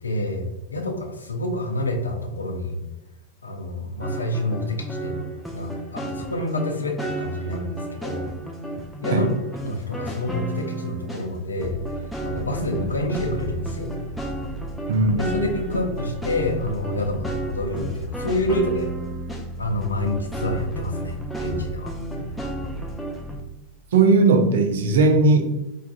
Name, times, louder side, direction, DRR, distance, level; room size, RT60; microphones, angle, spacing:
voice 1, 0.0-2.8 3.4-5.3 5.5-8.3 9.0-9.3 9.6-11.8 12.2-13.9 15.2-18.9 19.6-21.9, left 1 dB, 75° left, 2 dB, 0.5 m, -27 dB
sound 1, 4.0-11.3 11.6-23.4, right 1 dB, 5° left, 0.5 m, -32 dB
voice 2, 23.9-25.4, right 3 dB, 60° right, 5 dB, 0.5 m, -17 dB
4.5 x 2.4 x 2.4 m, 0.98 s
figure-of-eight pair, 90°, 0 cm